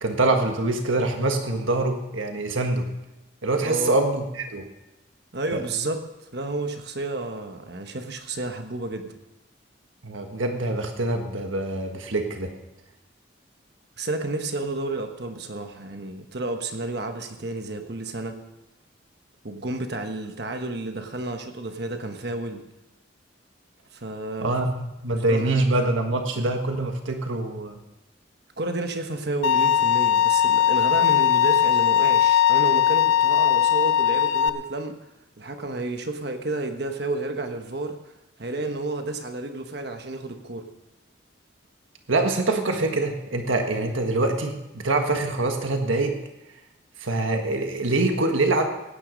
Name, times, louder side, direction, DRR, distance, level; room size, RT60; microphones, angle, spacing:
voice 1, 0.0-2.9 3.4-4.6 5.5-5.6 10.0-12.5 24.4-27.8 42.1-46.1 47.0-48.7, right 2 dB, 90° right, 4 dB, 1.6 m, -24 dB
voice 2, 3.6-4.0 5.3-6.0 6.3-9.2 14.0-18.4 19.4-22.6 23.9-24.6 25.3-25.7 28.6-35.0 35.4-38.0 38.4-40.7, right 2 dB, 55° right, 6 dB, 1.3 m, -31 dB
Bowed string instrument, 29.4-34.5, left 10 dB, 85° left, 0.6 m, -19 dB
16.5 x 9.7 x 5.2 m, 0.95 s
head